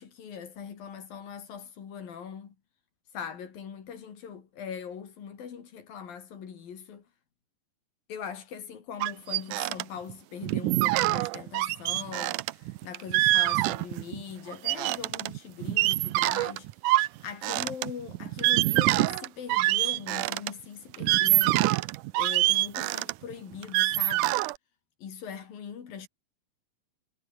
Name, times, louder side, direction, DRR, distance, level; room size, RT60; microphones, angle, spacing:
voice 1, 0.0-2.5 3.1-7.0 8.1-16.7 17.2-21.7 22.2-24.4 25.0-26.1, left 7 dB, 75° left, 4.9 m, -41 dB
sound 1, 9.0-9.8 10.1-10.2 10.4-14.2 14.5-20.5 20.9-24.6, right 18 dB, 75° right, 1.9 m, -25 dB
omnidirectional pair, 4.1 m